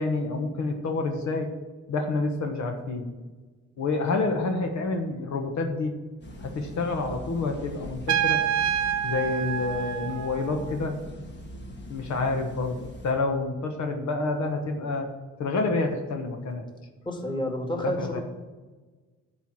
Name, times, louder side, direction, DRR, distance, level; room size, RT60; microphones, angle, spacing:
voice 1, 0.0-1.5 1.9-3.1 3.8-5.9 6.4-8.4 9.0-11.0 11.9-15.1 15.4-16.7 17.8-18.2, left 3 dB, 65° left, 4 dB, 1.4 m, -28 dB
sound 1, 6.2-13.2, equal, 35° left, 1.9 m, -42 dB
Trumpet, 8.1-10.7, right 9 dB, 65° right, 0.9 m, -27 dB
voice 2, 17.1-18.2, left 1 dB, 15° left, 1 dB, 2.0 m, -30 dB
11.0 x 4.7 x 7.3 m, 1.3 s
cardioid pair, 90°, 30 cm